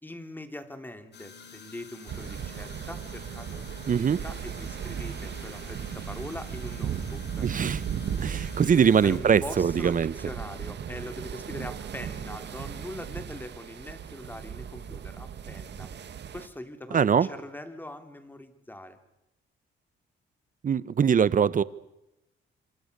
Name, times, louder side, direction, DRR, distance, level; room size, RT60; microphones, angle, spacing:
voice 1, 0.0-7.4 8.6-15.9 16.3-19.0, left 1 dB, 10° left, 3.1 m, -42 dB
sound 1, 1.1-9.2, left 6 dB, 60° left, 4.7 m, -48 dB
sound 2, 2.1-16.5, right 8 dB, 60° right, 2.2 m, -37 dB
voice 2, 3.9-4.2 7.4-7.8 8.2-10.1 16.9-17.3 20.6-21.6, right 7 dB, 40° right, 1.1 m, -22 dB
27.0 x 25.5 x 6.8 m
cardioid pair, 90°, 20 cm